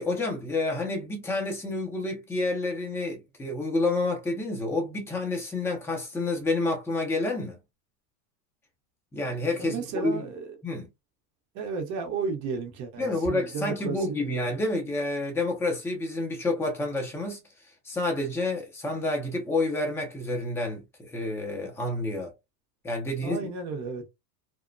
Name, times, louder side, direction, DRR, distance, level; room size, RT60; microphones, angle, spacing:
voice 1, 0.0-7.6 9.1-9.8 10.0-10.3 10.6-10.9 13.0-17.4 17.8-22.3 22.8-23.5, left 2 dB, 5° left, 0.5 m, -29 dB
voice 2, 9.6-10.6 11.5-14.3 23.2-24.1, right 5 dB, 35° right, 0.8 m, -33 dB
2.9 x 2.1 x 2.5 m
supercardioid pair, 130°, 49 cm